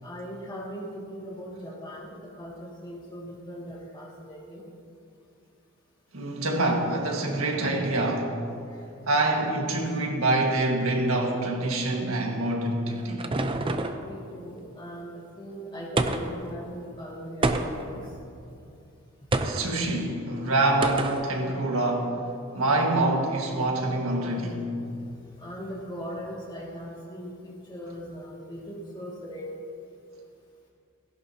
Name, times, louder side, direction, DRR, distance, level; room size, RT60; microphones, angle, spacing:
voice 1, 0.0-4.6 8.7-8.9 14.0-18.2 25.4-29.6, equal, 20° left, 2.2 m, -39 dB
voice 2, 6.1-8.4 9.1-13.3 19.4-22.3 22.5-24.7, right 2 dB, 80° right, 1.7 m, -26 dB
sound 1, 12.5-14.1 16.0-16.5 17.4-18.0 19.3-19.7 20.8-21.3, right 2 dB, 25° right, 0.6 m, -27 dB
17.0 x 15.5 x 2.8 m
head